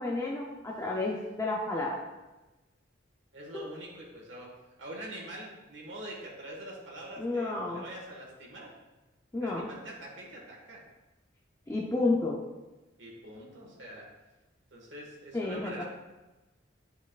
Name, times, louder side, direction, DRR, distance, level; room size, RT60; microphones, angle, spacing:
voice 1, 0.0-2.0 3.5-3.6 7.2-7.8 9.3-9.7 11.7-12.4 15.3-15.8, left 2 dB, 15° left, -3 dB, 0.5 m, -31 dB
voice 2, 3.3-4.5 4.8-8.7 9.3-10.8 13.0-14.1 14.7-15.8, right 1 dB, 70° right, -2 dB, 1.5 m, -44 dB
9.0 x 4.7 x 2.4 m, 1.1 s
head